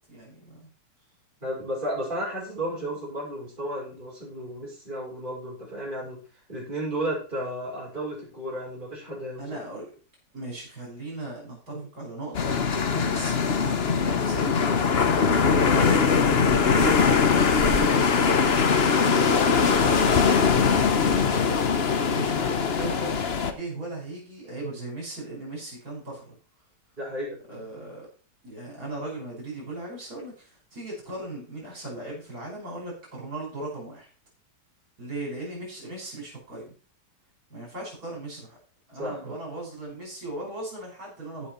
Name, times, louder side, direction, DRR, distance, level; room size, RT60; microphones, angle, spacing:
voice 1, 0.1-0.7 9.4-9.9 10.3-14.8 15.5-20.2 20.9-21.6 22.1-26.4 27.5-28.1 28.4-34.1 35.0-36.7 37.5-38.6 38.9-41.5, right 2 dB, 55° right, -3 dB, 6.1 m, -37 dB
voice 2, 1.4-6.2 6.5-9.4 27.0-27.6 38.9-39.4, right 1 dB, 25° right, -5 dB, 5.9 m, -33 dB
sound 1, 12.3-23.5, left 5 dB, 45° left, 1.0 m, -21 dB
15.0 x 6.0 x 4.4 m, 0.38 s
omnidirectional pair, 1.9 m